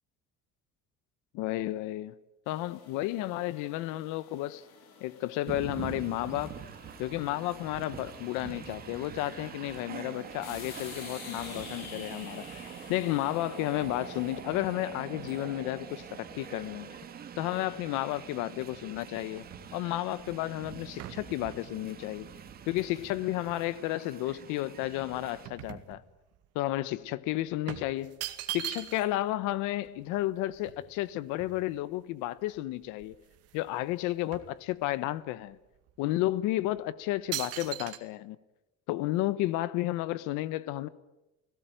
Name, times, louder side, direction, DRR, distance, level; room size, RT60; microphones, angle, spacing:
voice 1, 1.3-2.2 2.5-4.6 5.0-6.6 7.0-16.9 17.4-22.3 22.7-26.0 26.5-28.2 28.5-33.1 33.5-35.6 36.0-38.4 38.9-40.9, left 16 dB, 90° left, 1.1 m, -32 dB
sound 1, 2.5-17.0, left 7 dB, 60° left, 4.8 m, -52 dB
Train, 5.5-25.5, right 8 dB, 30° right, 2.0 m, -45 dB
sound 2, 19.1-23.8 24.3-26.5 26.8-26.9 27.7-29.3 29.6-29.7 29.8-32.0 32.5-32.6 32.9-33.7 33.9-35.2 35.8-35.9 36.5-36.8 37.3-38.0, right 13 dB, 55° right, 2.1 m, -42 dB
29.5 x 17.5 x 9.1 m
cardioid pair, 170°, 30 cm